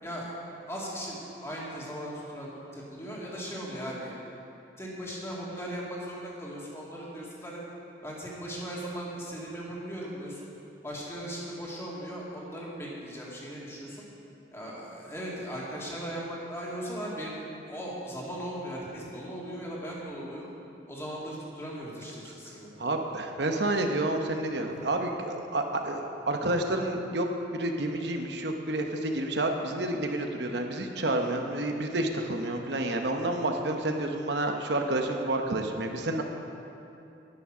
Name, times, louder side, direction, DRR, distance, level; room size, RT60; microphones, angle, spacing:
voice 1, 0.0-0.4 0.7-4.2 4.8-7.6 8.0-10.5 10.8-14.0 14.5-20.5 20.9-22.7 24.7-24.8, equal, 15° left, -5 dB, 2.3 m, -38 dB
voice 2, 22.8-36.2, right 1 dB, 60° right, 4 dB, 1.0 m, -29 dB
11.0 x 10.0 x 6.1 m, 2.8 s
head